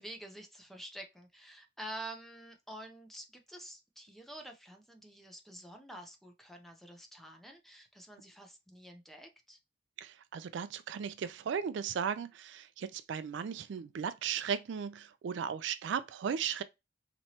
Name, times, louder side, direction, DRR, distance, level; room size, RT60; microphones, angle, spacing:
voice 1, 0.0-9.6, right 1 dB, ahead, 0.7 m, -48 dB
voice 2, 10.0-16.6, right 7 dB, 65° right, 0.3 m, -36 dB
4.4 x 3.0 x 2.8 m
head